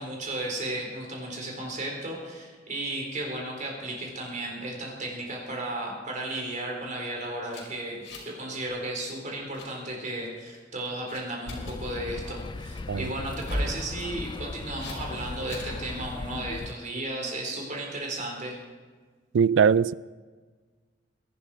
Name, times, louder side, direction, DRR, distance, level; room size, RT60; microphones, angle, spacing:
voice 1, 0.0-18.6, right 1 dB, 45° right, 4.4 m, -34 dB
sound 1, 7.5-8.4 8.7-8.9 9.3-9.7 10.2-10.6 11.1-11.8 13.3-13.8 14.8-15.0 15.5-15.8, left 1 dB, 75° left, 4.9 m, -36 dB
sound 2, 11.5-16.7, left 3 dB, 25° left, 0.3 m, -38 dB
voice 2, 19.3-19.9, right 7 dB, 85° right, 0.4 m, -21 dB
21.5 x 12.0 x 4.5 m
head